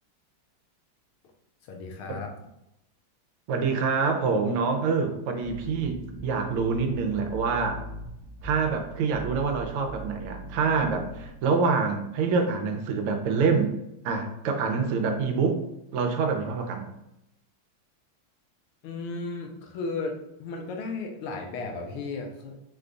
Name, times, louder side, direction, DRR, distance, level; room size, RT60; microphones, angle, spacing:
voice 1, 1.7-2.3 18.8-22.5, left 3 dB, 85° left, 2 dB, 1.6 m, -34 dB
voice 2, 3.5-7.8 8.4-13.7 14.0-15.6 15.9-16.9, right 5 dB, 80° right, 4 dB, 1.6 m, -26 dB
sound 1, 5.4-11.4, right 1 dB, 55° right, 1.1 m, -40 dB
5.0 x 2.3 x 3.8 m, 0.86 s
omnidirectional pair, 2.4 m